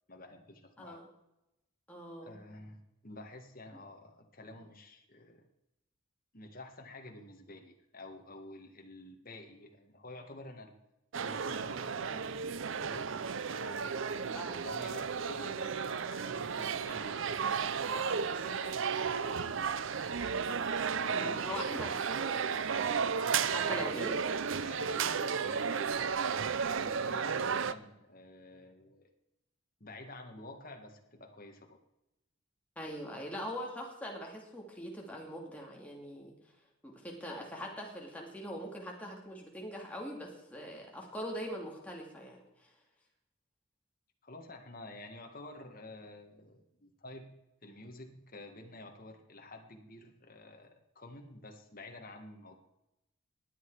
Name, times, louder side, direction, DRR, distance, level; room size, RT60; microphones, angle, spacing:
voice 1, 0.1-1.0 2.2-5.4 6.3-10.8 11.2-15.8 16.1-20.2 20.9-22.0 23.2-24.0 24.6-26.0 26.6-29.1 29.8-31.8 44.2-47.3 47.6-52.6, left 2 dB, 40° left, 3 dB, 1.7 m, -50 dB
voice 2, 1.9-2.4 14.3-14.7 21.1-22.5 23.5-24.2 32.8-36.3 36.8-42.7, equal, 5° left, -1 dB, 2.4 m, -42 dB
sound 1, 11.1-27.7, right 6 dB, 60° right, 0.5 m, -33 dB
20.0 x 8.2 x 4.8 m, 0.91 s
head